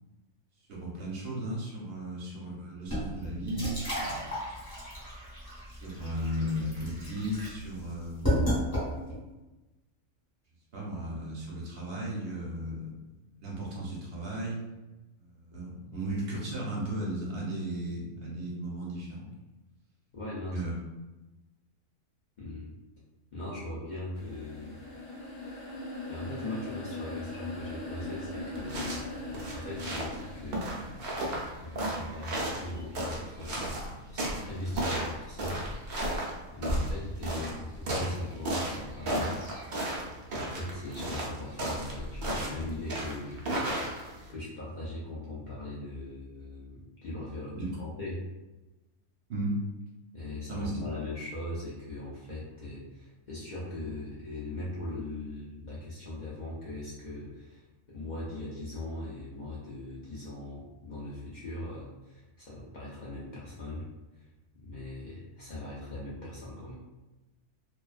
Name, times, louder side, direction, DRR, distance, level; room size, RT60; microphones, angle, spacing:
voice 1, 0.7-4.4 5.7-8.4 10.7-12.9 13.4-14.6 15.2-19.3 20.5-20.7 47.5-47.6 49.3-49.6 50.5-50.7, right 1 dB, 55° right, -4 dB, 0.7 m, -35 dB
sound 1, 2.9-9.3, equal, 15° left, 1.0 m, -33 dB
voice 2, 20.1-20.6 22.4-22.7 23.3-24.8 26.1-29.0 29.5-30.7 31.6-33.6 34.1-35.7 36.5-39.4 40.3-43.4 44.3-48.2 50.1-63.9 64.1-64.3 64.5-66.7, left 1 dB, 75° left, -7 dB, 0.4 m, -40 dB
sound 2, 24.1-32.1, left 2 dB, 55° left, 0.8 m, -41 dB
sound 3, 28.5-44.3, right 1 dB, 75° right, 0.4 m, -34 dB
2.3 x 2.2 x 2.4 m, 1.1 s
omnidirectional pair, 1.4 m